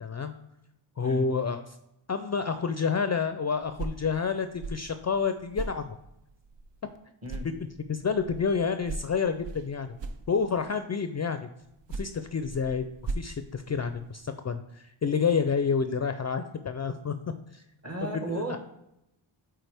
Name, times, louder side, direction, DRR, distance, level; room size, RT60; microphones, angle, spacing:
voice 1, 0.0-0.3 1.0-1.8 2.1-5.9 7.4-10.0 10.3-11.4 11.9-12.9 13.1-17.1 17.5-17.6 18.3-18.6, left 5 dB, 35° left, 9 dB, 0.4 m, -29 dB
sound 1, 3.6-7.0 7.2-10.8 11.6-14.3, right 3 dB, 65° right, 0.6 m, -40 dB
voice 2, 17.8-18.6, right 2 dB, 30° right, 4 dB, 1.2 m, -34 dB
9.1 x 3.8 x 3.4 m, 0.83 s
wide cardioid pair, 80°, 48 cm